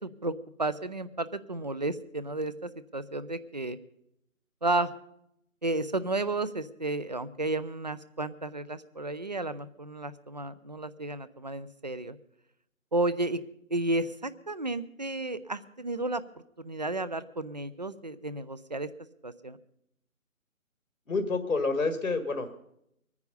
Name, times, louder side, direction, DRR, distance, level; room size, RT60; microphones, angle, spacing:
voice 1, 0.0-3.8 4.6-4.9 5.6-12.2 12.9-13.4 13.7-16.2 16.6-18.9 19.2-19.6, right 2 dB, 30° right, 16 dB, 0.5 m, -32 dB
voice 2, 21.1-22.7, left 3 dB, 85° left, 8 dB, 1.7 m, -29 dB
22.0 x 9.6 x 5.3 m, 0.77 s
figure-of-eight pair, 145°, 42 cm